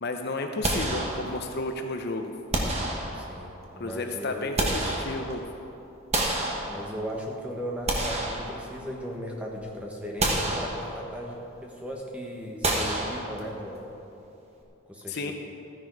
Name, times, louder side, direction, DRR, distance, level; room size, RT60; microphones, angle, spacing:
voice 1, 0.0-2.3 3.8-5.4 15.1-15.3, left 2 dB, 45° left, 5 dB, 0.7 m, -32 dB
sound 1, 0.6-1.7 2.5-3.6 4.2-5.6 6.1-7.2 7.7-9.1 9.5-9.7 10.2-11.3 12.6-13.8, right 1 dB, 30° right, 1.3 m, -29 dB
voice 2, 3.1-4.5 6.7-13.9 14.9-15.3, equal, 5° right, -1 dB, 1.3 m, -37 dB
13.5 x 10.0 x 4.8 m, 2.8 s
head